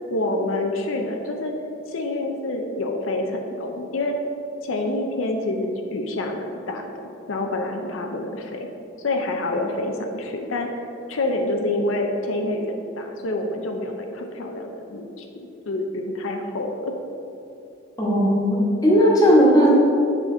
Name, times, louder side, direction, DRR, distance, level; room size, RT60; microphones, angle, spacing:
voice 1, 0.1-1.5 1.9-4.2 4.6-6.9 7.3-8.7 9.0-16.9, left 2 dB, 85° left, 3 dB, 0.6 m, -27 dB
voice 2, 18.0-18.6 18.8-19.7, equal, 20° left, -4 dB, 1.2 m, -16 dB
7.5 x 5.0 x 3.8 m, 2.8 s
head